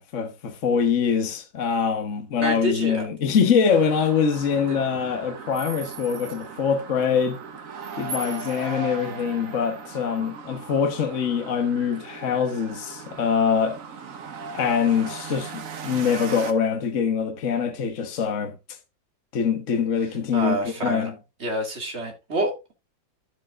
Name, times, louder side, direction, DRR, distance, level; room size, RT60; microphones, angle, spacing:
voice 1, 0.0-7.4 8.0-13.8 14.5-18.5 19.3-21.1, left 6 dB, 45° left, 1.4 m, -24 dB
voice 2, 2.4-3.0 4.7-4.8 20.3-21.1 21.4-22.7, right 2 dB, 35° right, 2.4 m, -28 dB
sound 1, 3.7-16.5, right 5 dB, 50° right, 1.4 m, -38 dB
11.5 x 7.8 x 2.4 m
omnidirectional pair, 2.0 m